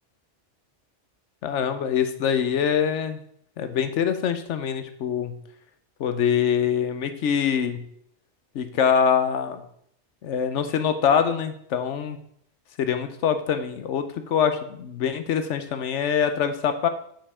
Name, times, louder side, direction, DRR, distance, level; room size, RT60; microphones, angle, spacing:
voice 1, 1.4-3.2 3.6-5.4 6.0-7.8 8.5-9.6 10.2-12.2 12.8-16.9, left 7 dB, 90° left, 9 dB, 1.1 m, -24 dB
7.2 x 5.5 x 4.9 m, 0.68 s
omnidirectional pair, 1.2 m